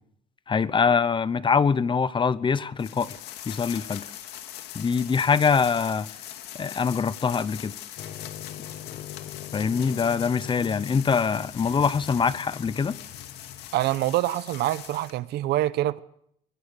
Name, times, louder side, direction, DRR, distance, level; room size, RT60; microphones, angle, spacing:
voice 1, 0.5-3.1 3.5-4.0 4.7-6.1 6.5-7.7 9.5-13.0, left 5 dB, 30° left, 0.9 m, -24 dB
sound 1, 2.8-15.2, left 12 dB, 90° left, 2.2 m, -41 dB
sound 2, 8.0-13.9, left 10 dB, 60° left, 1.4 m, -42 dB
voice 2, 13.7-16.0, right 15 dB, 80° right, 1.0 m, -25 dB
22.5 x 20.0 x 6.7 m
cardioid pair, 110°, 17 cm